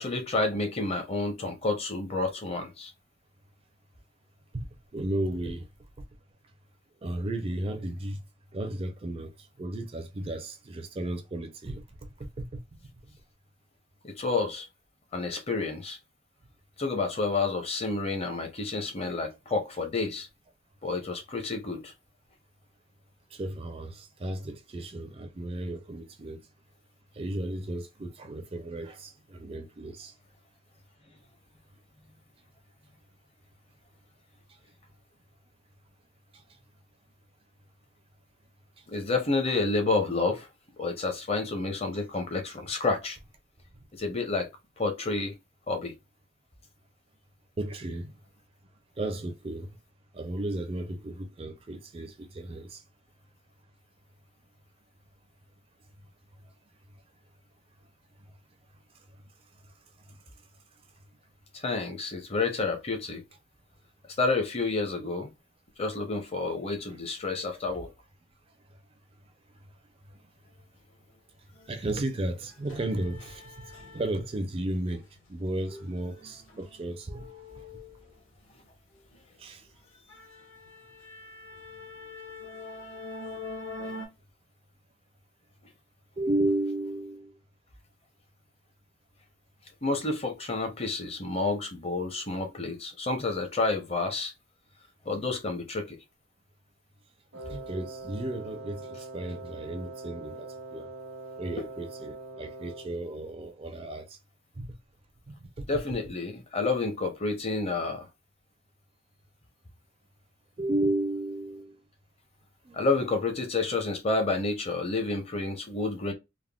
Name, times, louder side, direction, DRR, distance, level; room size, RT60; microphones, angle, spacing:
voice 1, 0.0-2.9 14.0-14.7 15.1-16.0 16.8-20.3 20.8-21.9 38.9-40.5 40.8-43.2 43.9-44.5 44.8-45.3 45.7-45.9 61.5-63.2 64.2-65.3 65.8-67.9 89.8-94.3 95.0-96.0 105.7-108.1 112.7-116.1, left 3 dB, 30° left, 0.6 m, -29 dB
voice 2, 4.5-5.7 6.0-6.1 7.0-8.2 8.5-12.6 23.3-26.4 27.1-30.1 36.3-36.4 38.8-38.9 47.6-48.1 49.0-49.8 50.1-52.8 60.1-60.2 71.7-75.0 75.3-77.7 79.4-79.7 86.2-87.4 97.3-100.9 101.4-104.2 104.6-104.8 105.3-106.0 110.6-111.8 112.6-112.8, right 1 dB, 30° right, 0.4 m, -34 dB
sound 1, 71.5-71.7 72.1-74.5 74.8-78.6 79.0-79.2 79.6-79.7 80.1-84.1, left 2 dB, 70° left, 1.1 m, -44 dB
Wind instrument woodwind instrument, 97.3-103.0, right 2 dB, 90° right, 0.9 m, -42 dB
3.4 x 2.1 x 2.2 m
head